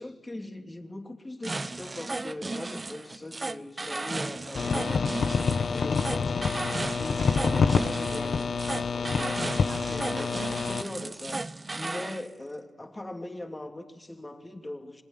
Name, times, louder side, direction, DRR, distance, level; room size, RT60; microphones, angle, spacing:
voice 1, 0.0-6.5 7.0-9.4 9.8-11.4 11.7-15.0, left 1 dB, 25° left, 4 dB, 3.0 m, -40 dB
sound 1, 1.4-12.2, right 2 dB, 35° right, 0.8 m, -35 dB
sound 2, 4.5-10.8, left 5 dB, 65° left, 1.2 m, -27 dB
27.0 x 19.5 x 7.5 m, 1.4 s
supercardioid pair, 45°, 0 cm